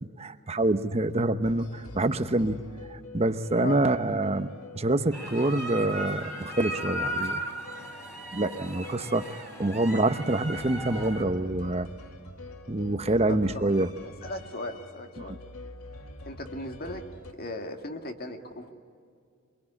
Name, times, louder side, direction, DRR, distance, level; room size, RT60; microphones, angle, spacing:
voice 1, 0.0-2.6 2.9-7.4 8.3-11.9 12.7-13.9 15.2-15.3, right 2 dB, 30° right, 10 dB, 0.9 m, -26 dB
sound 1, 1.4-17.3, left 2 dB, 80° left, 1.9 m, -46 dB
sound 2, 5.1-11.2, equal, 10° left, 3.8 m, -36 dB
voice 2, 13.3-13.7 14.0-15.3 16.3-17.0 17.4-18.7, left 2 dB, 45° left, 5 dB, 2.1 m, -37 dB
25.0 x 22.5 x 10.0 m, 2.3 s
head